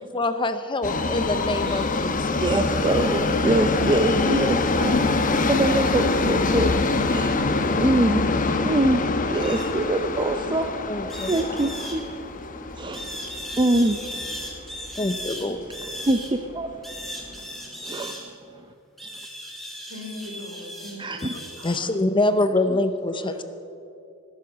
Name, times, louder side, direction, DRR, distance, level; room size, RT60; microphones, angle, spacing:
voice 1, 0.1-2.4 10.9-11.5 15.0-15.6 21.6-23.4, left 2 dB, 25° left, 11 dB, 0.6 m, -25 dB
Subway metro underground, 0.8-14.9 15.3-15.4 16.2-16.3 16.6-16.7 17.3-17.4, left 3 dB, 40° left, 0.9 m, -25 dB
voice 2, 2.2-10.7 11.2-14.4 15.8-18.7 19.0-19.1 21.0-21.4, right 1 dB, 20° right, 6 dB, 0.6 m, -26 dB
sound 1, 9.4-9.7 11.1-12.0 12.9-16.3 16.8-18.3 19.0-21.8, equal, ahead, 2.6 m, -37 dB
voice 3, 19.9-22.4 23.1-23.4, left 1 dB, 60° right, 2 dB, 3.5 m, -40 dB
18.5 x 10.5 x 7.1 m, 2.8 s
head